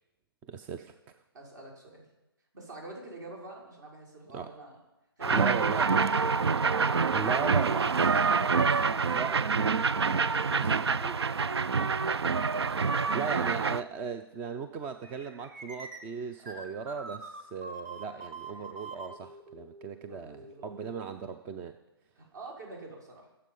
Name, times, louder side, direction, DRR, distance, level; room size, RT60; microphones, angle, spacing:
voice 1, 0.5-1.2 4.3-4.5 5.3-5.9 7.1-7.9 8.9-9.6 10.5-11.2 12.7-21.8, right 5 dB, 15° right, 8 dB, 0.4 m, -37 dB
voice 2, 1.3-2.1 2.5-4.8 5.2-7.7 8.3-11.9 12.6-13.5 16.4-16.7 18.5-18.7 20.1-20.9 22.1-23.3, right 2 dB, 50° right, -1 dB, 5.3 m, -47 dB
sound 1, 5.2-13.8, right 5 dB, 85° right, 0.5 m, -26 dB
sound 2, 15.0-21.2, right 3 dB, 30° right, 1.7 m, -45 dB
23.0 x 7.7 x 5.4 m, 0.98 s
hypercardioid pair, 145°, 13 cm